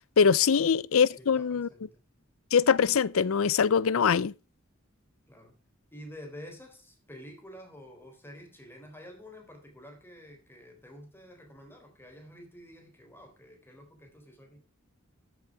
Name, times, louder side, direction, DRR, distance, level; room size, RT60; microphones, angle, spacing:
voice 1, 0.2-1.7 2.5-4.3, left 6 dB, 80° left, 0.5 m, -23 dB
voice 2, 1.2-2.0 5.3-5.6 5.9-14.6, equal, 10° left, 3.6 m, -49 dB
14.0 x 7.2 x 4.8 m
head